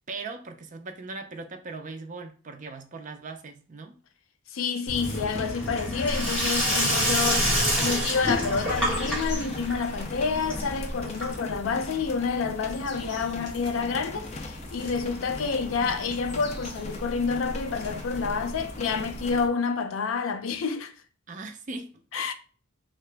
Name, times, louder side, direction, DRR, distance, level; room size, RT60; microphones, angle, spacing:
voice 1, 0.1-4.0 21.3-22.2, right 3 dB, 40° right, 0.5 m, -39 dB
voice 2, 4.5-7.5 7.8-20.9 22.1-22.3, left 5 dB, 90° left, 0.4 m, -28 dB
Sink (filling or washing), 4.9-11.7, equal, 5° left, 1.4 m, -28 dB
sound 1, 5.0-19.4, left 2 dB, 35° left, 0.4 m, -41 dB
sound 2, 6.1-19.5, equal, 60° left, 1.2 m, -38 dB
2.8 x 2.4 x 3.3 m
head